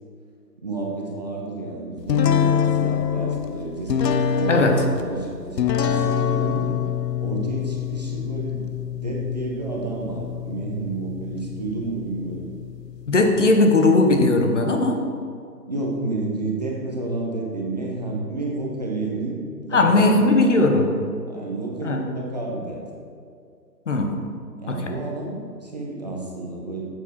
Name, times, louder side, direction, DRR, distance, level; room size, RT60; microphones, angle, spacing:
voice 1, 0.6-6.7 7.2-8.7 9.0-12.5 15.7-20.3 20.6-20.9 21.3-22.8 24.6-26.9, right 2 dB, 25° right, -2 dB, 0.8 m, -30 dB
sound 1, 2.1-13.6, left 8 dB, 75° left, 0.8 m, -26 dB
voice 2, 13.1-15.0 19.7-20.9 21.8-22.0 23.9-24.1 24.7-24.8, left 2 dB, 45° left, 4 dB, 1.1 m, -18 dB
8.8 x 7.9 x 4.4 m, 2.3 s
hypercardioid pair, 160°, 50 cm